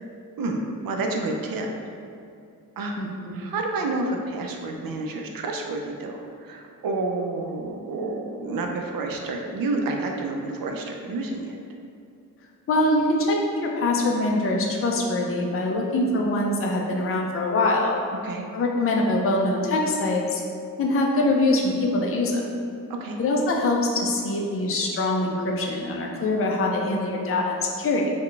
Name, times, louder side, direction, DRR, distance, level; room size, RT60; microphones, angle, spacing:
voice 1, 0.4-1.7 2.8-11.6 18.2-18.5 22.9-23.2, right 2 dB, 80° right, 2 dB, 0.5 m, -29 dB
voice 2, 3.0-3.4 12.7-13.4 13.6-17.9 18.5-20.4 20.8-22.5 23.2-28.1, left 2 dB, 40° left, -1 dB, 0.4 m, -23 dB
3.9 x 2.2 x 3.2 m, 2.5 s
wide cardioid pair, 145°, 34 cm